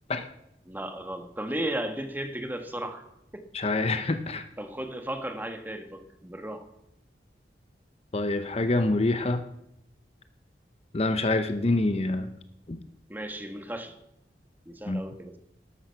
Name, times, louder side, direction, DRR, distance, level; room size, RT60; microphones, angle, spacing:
voice 1, 0.6-3.0 3.3-3.4 4.6-6.7 13.1-14.0 14.6-15.4, right 1 dB, 10° right, 6 dB, 1.4 m, -35 dB
voice 2, 3.5-4.5 8.1-9.4 10.9-12.3 12.7-12.8 14.9-15.0, left 2 dB, 35° left, 9 dB, 0.8 m, -26 dB
13.0 x 12.5 x 5.8 m, 0.80 s
head